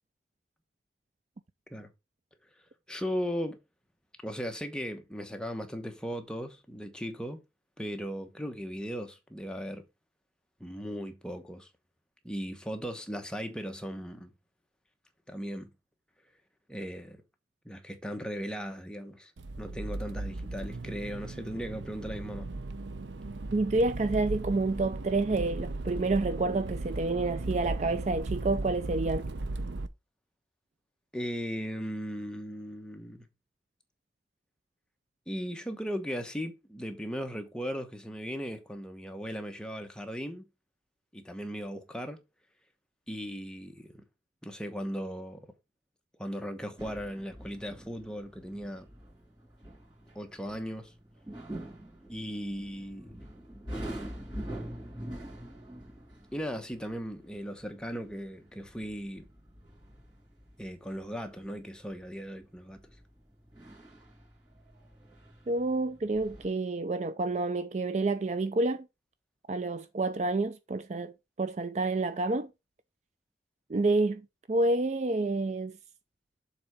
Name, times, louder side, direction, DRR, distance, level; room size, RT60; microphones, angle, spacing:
voice 1, 2.9-3.6 4.2-7.4 7.8-9.8 10.6-11.7 12.2-14.3 15.3-15.7 16.7-17.2 17.6-19.3 19.6-22.5 31.1-33.3 35.3-40.5 41.1-42.2 43.1-44.0 44.4-45.4 46.2-48.9 50.1-50.9 52.1-53.2 56.3-59.3 60.6-62.8, equal, 5° left, 1.0 m, -37 dB
Accelerating revving vroom, 19.4-29.9, right 2 dB, 90° right, 0.7 m, -37 dB
voice 2, 23.5-29.2 65.5-68.9 69.5-72.5 73.7-74.2 74.5-75.8, right 2 dB, 40° right, 0.4 m, -29 dB
sound 1, 46.8-66.5, right 1 dB, 25° right, 2.9 m, -46 dB
7.0 x 4.1 x 4.8 m
head